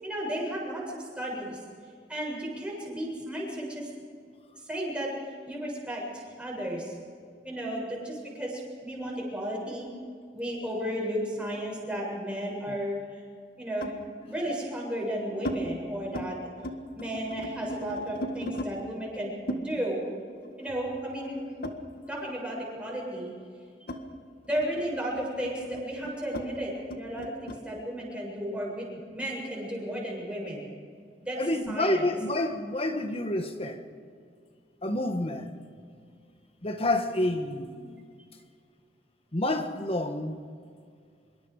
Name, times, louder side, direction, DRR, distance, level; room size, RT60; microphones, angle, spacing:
voice 1, 0.0-1.6 2.1-3.9 4.7-5.1 5.5-7.0 7.4-9.9 10.3-12.9 13.6-13.9 14.3-16.4 16.9-20.0 20.6-21.4 22.1-23.3 24.4-28.9 29.1-30.7 31.2-31.4 31.7-32.0, equal, 5° right, 7.2 m, -34 dB
sound 1, 10.9-12.5 13.8-14.1 14.8-15.6 16.0-16.3 16.6-18.7 19.5-22.4 22.7-27.6, equal, 55° left, 1.7 m, -39 dB
voice 2, 31.4-33.8 34.8-35.5 36.6-38.1 39.3-40.4, left 1 dB, 35° left, 1.6 m, -29 dB
25.5 x 23.0 x 5.0 m
head